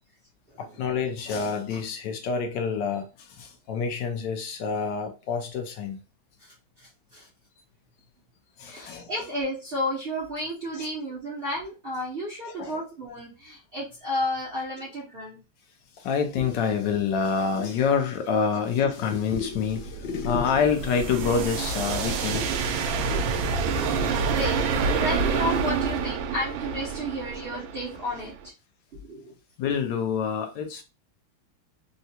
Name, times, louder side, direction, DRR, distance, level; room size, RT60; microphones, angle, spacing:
voice 1, 0.6-6.0 8.6-9.1 10.7-10.9 12.4-12.8 16.0-22.6 23.1-23.5 29.6-30.8, left 6 dB, 70° left, 1.1 m, -27 dB
voice 2, 6.4-7.3 8.6-15.4 23.1-23.4 24.2-28.3 28.9-29.3, left 1 dB, 55° right, 0.6 m, -32 dB
sound 1, 19.5-28.5, right 5 dB, 75° right, 1.3 m, -28 dB
3.7 x 2.2 x 2.7 m
omnidirectional pair, 2.3 m